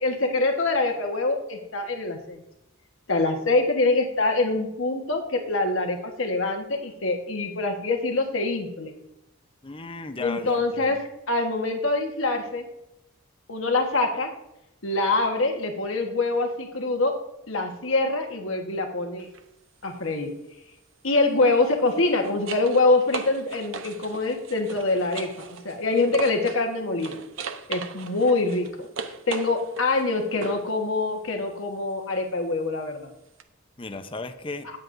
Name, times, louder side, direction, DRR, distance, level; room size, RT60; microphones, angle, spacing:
voice 1, 0.0-2.4 3.1-8.9 10.2-11.0 11.3-12.6 13.5-14.3 14.8-17.1 17.5-19.3 19.8-20.3 21.0-27.2 27.7-28.9 29.3-33.1, left 2 dB, 70° left, 3 dB, 1.3 m, -25 dB
voice 2, 9.6-11.0 33.8-34.7, left 3 dB, 25° left, 8 dB, 0.7 m, -36 dB
sound 1, 19.2-19.4 21.7-26.7 27.0-30.7 33.4-33.5, right 5 dB, 65° right, 0.8 m, -38 dB
18.5 x 7.9 x 2.6 m, 0.89 s
head